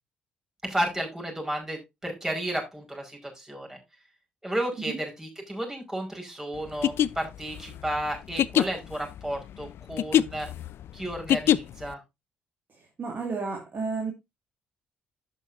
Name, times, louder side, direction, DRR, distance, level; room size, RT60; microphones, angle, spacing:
voice 1, 0.6-3.8 4.4-10.5 10.9-12.0, right 1 dB, 10° right, 5.1 m, -32 dB
sound 1, 6.7-11.9, left 11 dB, 55° left, 0.4 m, -25 dB
voice 2, 13.0-14.1, right 4 dB, 40° right, 2.2 m, -31 dB
11.0 x 8.0 x 2.6 m
figure-of-eight pair, 45°, 5 cm